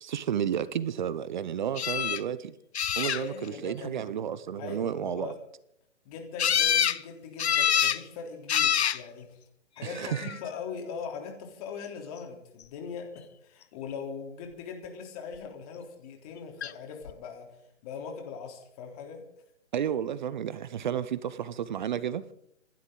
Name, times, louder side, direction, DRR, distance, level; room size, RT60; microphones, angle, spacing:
voice 1, 0.0-2.5 3.0-5.3 9.8-10.3 19.7-22.2, right 9 dB, 40° right, 0.8 m, -32 dB
voice 2, 1.7-2.1 3.0-4.0 4.6-5.4 6.1-9.4 9.8-17.5 17.8-19.2, left 6 dB, 30° left, 3.5 m, -41 dB
sound 1, 1.8-2.2 2.7-3.5 6.4-7.0 7.4-8.0 8.5-9.0 9.9-10.4 16.6-16.7 17.1-17.2, left 9 dB, 60° left, 0.8 m, -26 dB
26.5 x 12.0 x 3.9 m
figure-of-eight pair, 140°, 37 cm